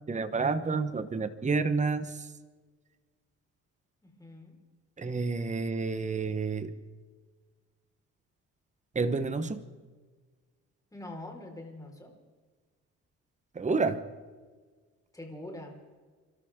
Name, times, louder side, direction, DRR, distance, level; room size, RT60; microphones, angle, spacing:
voice 1, 0.1-2.3 5.0-6.7 8.9-9.6 13.5-14.0, right 4 dB, 25° right, 11 dB, 1.1 m, -29 dB
voice 2, 4.0-4.5 10.9-12.1 15.1-15.8, left 1 dB, 10° left, 1 dB, 4.7 m, -44 dB
29.5 x 13.0 x 3.7 m, 1.4 s
cardioid pair, 90°, 30 cm